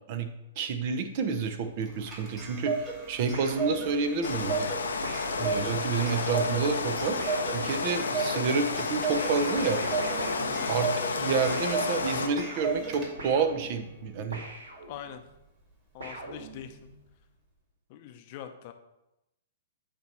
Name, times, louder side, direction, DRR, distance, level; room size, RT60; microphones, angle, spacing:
voice 1, 0.6-4.7 5.4-7.2 7.5-9.8 10.7-14.4, right 5 dB, 50° right, 7 dB, 0.8 m, -29 dB
Clock, 1.8-13.4, right 5 dB, 25° right, 2.2 m, -35 dB
sound 1, 3.3-4.3 5.0-8.2 9.1-11.2 11.5-15.3 16.0-17.0, right 2 dB, 80° right, 1.9 m, -41 dB
Rain, 4.2-12.3, left 4 dB, 90° left, 0.8 m, -31 dB
voice 2, 10.3-10.7 14.9-15.2 15.9-16.9 17.9-18.7, left 9 dB, 45° left, 7 dB, 0.7 m, -43 dB
8.3 x 3.0 x 6.1 m, 0.92 s
hypercardioid pair, 130°, 0 cm